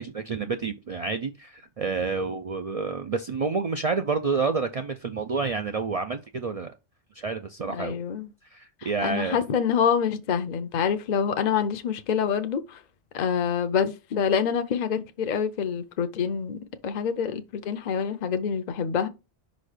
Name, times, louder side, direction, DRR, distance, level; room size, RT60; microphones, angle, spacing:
voice 1, 0.0-6.7 7.2-8.0 8.5-9.4, right 4 dB, 55° right, 0.4 m, -29 dB
voice 2, 7.7-8.3 9.0-12.8 13.1-19.1, left 7 dB, 50° left, 0.6 m, -26 dB
5.3 x 4.1 x 5.0 m
omnidirectional pair, 1.2 m